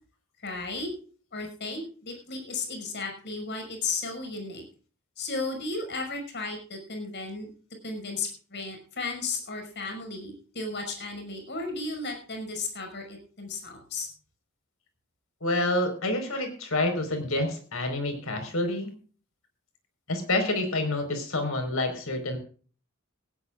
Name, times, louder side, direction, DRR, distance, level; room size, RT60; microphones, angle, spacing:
voice 1, 0.4-0.9 1.3-4.6 5.2-7.5 7.8-14.1, left 3 dB, 55° left, 4 dB, 5.7 m, -34 dB
voice 2, 15.4-18.9 20.1-22.4, left 2 dB, 70° left, 6 dB, 4.7 m, -28 dB
17.5 x 17.0 x 2.5 m, 0.41 s
head